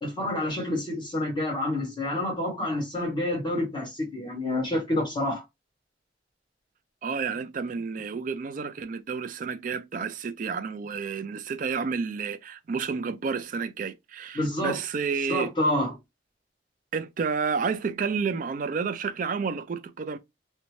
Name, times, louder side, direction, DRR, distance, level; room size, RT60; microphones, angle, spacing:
voice 1, 0.0-5.4 14.3-14.8 15.3-16.0, left 1 dB, 25° left, 1.1 m, -28 dB
voice 2, 7.0-15.5 16.9-20.2, right 5 dB, 50° right, 0.4 m, -30 dB
2.6 x 2.1 x 3.0 m
head